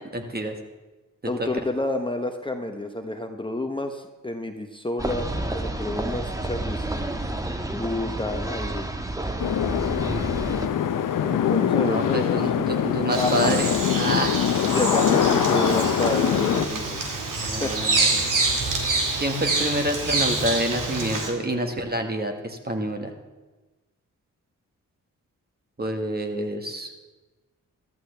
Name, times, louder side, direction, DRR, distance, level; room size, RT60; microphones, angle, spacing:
voice 1, 0.1-0.5 1.4-1.5 11.7-14.4 17.4-18.2 19.2-23.1 25.8-26.9, right 1 dB, 30° right, 5 dB, 1.7 m, -27 dB
voice 2, 1.3-6.9 7.7-8.9 11.2-12.8 13.1-13.6 14.7-17.0 17.6-17.8, left 1 dB, 15° left, 5 dB, 0.9 m, -29 dB
sound 1, 5.0-10.7, right 1 dB, 10° right, 1.2 m, -30 dB
sound 2, 9.4-16.7, left 9 dB, 75° left, 0.7 m, -23 dB
Bird vocalization bird call bird song, 13.1-21.3, right 3 dB, 75° right, 2.2 m, -26 dB
14.0 x 12.0 x 3.4 m, 1.2 s
cardioid pair, 55°, 32 cm